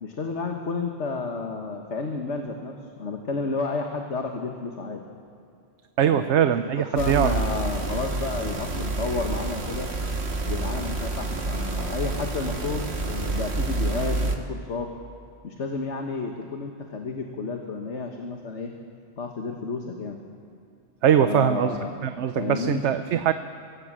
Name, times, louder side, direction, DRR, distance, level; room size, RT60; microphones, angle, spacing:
voice 1, 0.0-2.7 3.0-5.0 6.0-9.9 10.5-14.9 15.4-18.7 19.2-20.2 21.2-22.0 22.4-22.8, left 4 dB, 90° left, 3 dB, 1.8 m, -31 dB
voice 2, 6.0-7.3 21.0-21.8 22.0-23.3, right 9 dB, 85° right, 10 dB, 1.0 m, -22 dB
sound 1, 7.0-14.4, right 3 dB, 70° right, 1.9 m, -28 dB
24.0 x 17.5 x 7.6 m, 2.4 s
omnidirectional pair, 1.1 m